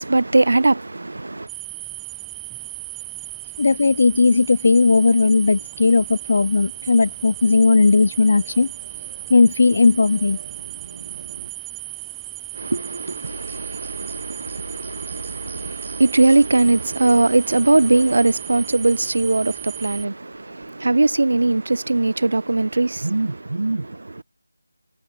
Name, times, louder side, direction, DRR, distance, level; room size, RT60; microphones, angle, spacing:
voice 1, 0.0-1.5 12.6-24.2, right 2 dB, 60° right, 0.5 m, -20 dB
sound 1, 1.5-20.0, right 21 dB, 5° right, 0.7 m, -36 dB
sound 2, 1.5-11.5, right 4 dB, 40° right, 7.6 m, -47 dB
voice 2, 3.6-8.7 9.3-10.4, left 4 dB, 40° left, 0.5 m, -16 dB
sound 3, 13.2-16.8, right 2 dB, 80° right, 4.6 m, -40 dB
figure-of-eight pair, 170°, 0 cm